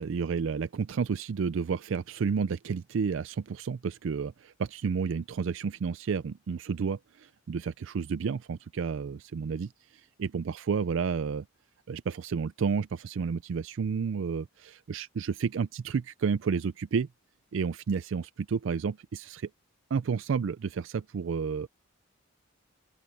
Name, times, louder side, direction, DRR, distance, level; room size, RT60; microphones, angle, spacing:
voice 1, 0.0-11.5 11.9-17.1 17.5-19.5 19.9-21.7, right 5 dB, 60° right, 0.4 m, -31 dB
open air
head